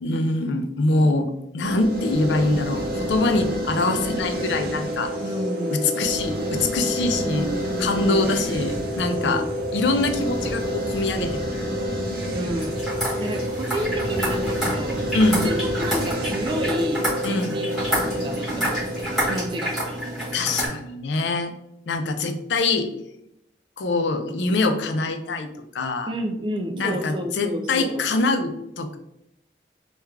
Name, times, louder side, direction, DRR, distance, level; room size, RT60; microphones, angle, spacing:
voice 1, 0.0-5.1 5.7-7.5 7.8-9.4 9.7-11.7 15.1-15.5 17.2-17.6 20.3-21.5 21.9-22.9 23.8-25.5 25.7-26.1 26.8-29.0, left 2 dB, 90° left, 6 dB, 0.5 m, -24 dB
sound 1, 1.6-20.7, equal, 55° right, 0.7 m, -29 dB
voice 2, 5.2-5.9 7.1-8.3 9.1-9.5 12.3-12.8 13.2-17.7 18.0-19.8 26.1-28.1, equal, 25° right, 5 dB, 0.3 m, -30 dB
sound 2, 8.4-16.1, right 1 dB, 20° left, 0.7 m, -38 dB
sound 3, 12.6-20.7, right 1 dB, ahead, 1.4 m, -29 dB
3.4 x 2.3 x 3.2 m, 0.81 s
head